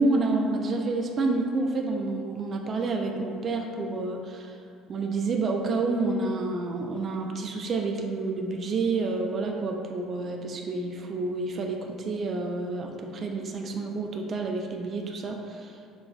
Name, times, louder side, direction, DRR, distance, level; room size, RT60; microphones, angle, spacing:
voice 1, 0.0-4.5 4.9-15.8, right 3 dB, 40° right, 2 dB, 0.3 m, -29 dB
5.2 x 2.1 x 2.3 m, 2.4 s
supercardioid pair, 100°, 0 cm